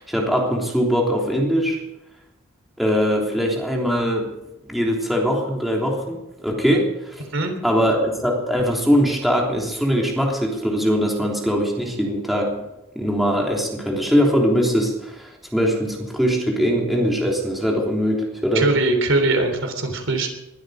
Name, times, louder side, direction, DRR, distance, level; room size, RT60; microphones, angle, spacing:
voice 1, 0.0-1.8 2.8-4.3 4.7-7.2 7.6-12.5 13.0-18.7, equal, ahead, -2 dB, 3.4 m, -21 dB
voice 2, 18.5-20.3, right 2 dB, 75° right, 5 dB, 3.5 m, -21 dB
21.0 x 12.5 x 5.1 m, 0.91 s
head